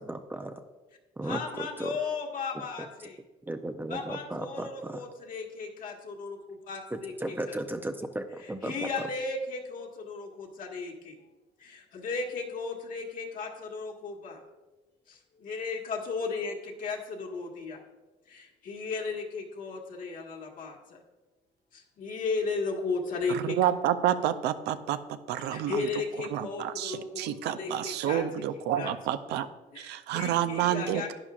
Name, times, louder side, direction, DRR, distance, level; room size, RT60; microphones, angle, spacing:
voice 1, 0.0-0.5 1.2-1.4 1.8-1.9 3.5-5.0 7.2-8.9, right 1 dB, 10° right, 7 dB, 0.5 m, -35 dB
voice 2, 1.2-3.2 3.9-7.6 8.4-11.2 11.6-14.4 15.1-17.8 18.3-21.0 21.7-23.6 25.5-28.2 28.7-28.9 29.7-31.1, left 4 dB, 55° left, 1 dB, 1.7 m, -35 dB
voice 3, 23.3-25.0 25.3-25.9 26.3-29.5 29.8-31.1, right 11 dB, 80° right, 11 dB, 0.6 m, -29 dB
11.0 x 9.8 x 2.5 m, 1.1 s
cardioid pair, 110°, 17 cm